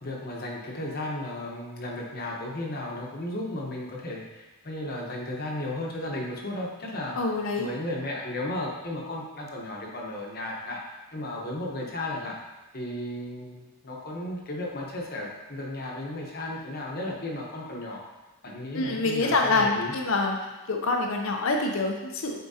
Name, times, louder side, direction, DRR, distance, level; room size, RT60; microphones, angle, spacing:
voice 1, 0.0-7.2 7.6-10.8 11.1-12.4 12.7-18.0 18.4-19.9, left 1 dB, 45° left, -2 dB, 1.0 m, -34 dB
voice 2, 7.1-7.7 18.7-20.4 20.7-22.4, left 3 dB, 65° left, 2 dB, 0.6 m, -26 dB
8.2 x 4.5 x 2.8 m, 1.1 s
head